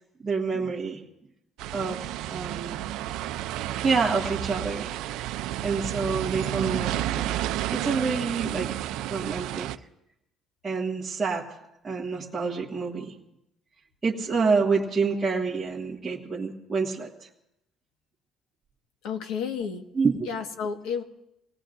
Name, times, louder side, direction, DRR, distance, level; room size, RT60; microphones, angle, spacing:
voice 1, 0.2-1.0 1.7-2.7 3.8-4.9 5.6-7.4 7.7-8.7 9.1-9.7 10.6-11.5 11.8-13.1 14.0-17.3 19.9-20.1, right 4 dB, 15° right, -7 dB, 1.7 m, -27 dB
sound 1, 1.6-9.8, right 13 dB, 80° right, 0.5 m, -31 dB
voice 2, 19.0-19.8 20.2-21.0, left 6 dB, 85° left, 5 dB, 1.6 m, -31 dB
28.0 x 18.5 x 2.6 m, 0.83 s
cardioid pair, 160°, 0 cm